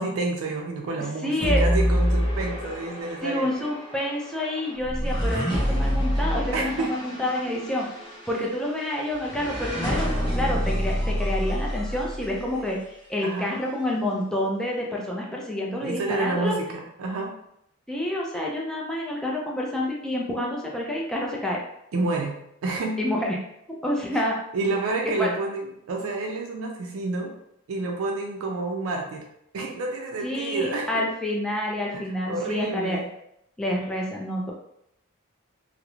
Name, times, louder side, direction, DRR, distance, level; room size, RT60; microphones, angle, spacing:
voice 1, 0.0-3.5 5.3-5.5 6.5-6.9 13.2-13.5 15.8-17.3 21.9-23.0 24.5-27.3 27.7-29.2 29.5-31.0 31.9-33.1, right 3 dB, 75° right, 1 dB, 0.4 m, -29 dB
voice 2, 1.2-1.7 3.2-7.9 8.3-10.1 10.4-12.8 13.1-16.6 17.9-21.6 23.0-23.4 23.7-24.4 25.0-25.3 30.2-33.0 33.6-34.5, left 1 dB, 5° left, -3 dB, 0.4 m, -28 dB
sound 1, 1.4-12.7, equal, 25° left, 0.9 m, -27 dB
2.3 x 2.0 x 2.9 m, 0.77 s
head